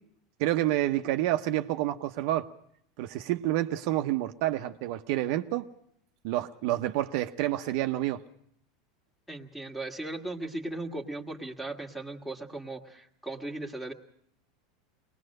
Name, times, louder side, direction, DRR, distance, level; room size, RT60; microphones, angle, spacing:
voice 1, 0.4-2.5 3.0-5.7 6.2-8.2, right 14 dB, 65° right, 0.8 m, -28 dB
voice 2, 9.3-13.9, right 2 dB, ahead, 1.8 m, -37 dB
23.0 x 20.0 x 6.5 m
supercardioid pair, 125°, 2 cm